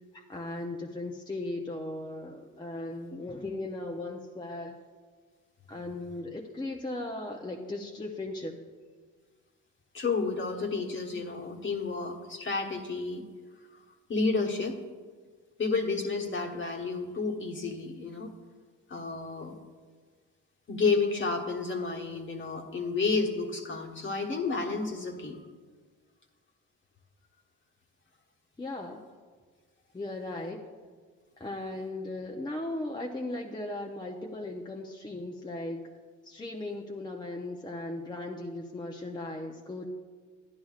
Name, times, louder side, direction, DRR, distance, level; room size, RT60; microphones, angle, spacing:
voice 1, 0.1-4.8 5.7-8.6 28.6-29.0 29.9-30.6 31.4-35.8 36.2-39.9, left 2 dB, 15° left, 0 dB, 0.7 m, -37 dB
voice 2, 9.9-13.2 14.1-14.8 15.6-18.3 18.9-19.5 20.7-25.4, left 4 dB, 40° left, 2 dB, 1.3 m, -31 dB
11.5 x 10.5 x 2.4 m, 1.5 s
cardioid pair, 90°, 30 cm